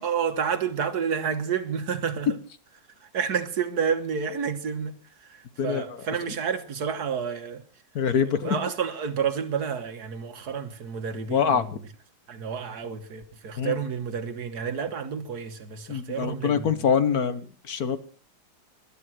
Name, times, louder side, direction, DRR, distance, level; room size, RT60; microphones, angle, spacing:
voice 1, 0.0-2.4 3.0-7.6 8.2-11.8 12.3-16.9, right 7 dB, 60° right, 1.8 m, -30 dB
voice 2, 7.9-8.6 11.3-11.6 13.6-13.8 15.9-18.0, left 7 dB, 60° left, 1.5 m, -24 dB
20.0 x 11.5 x 6.1 m
omnidirectional pair, 1.9 m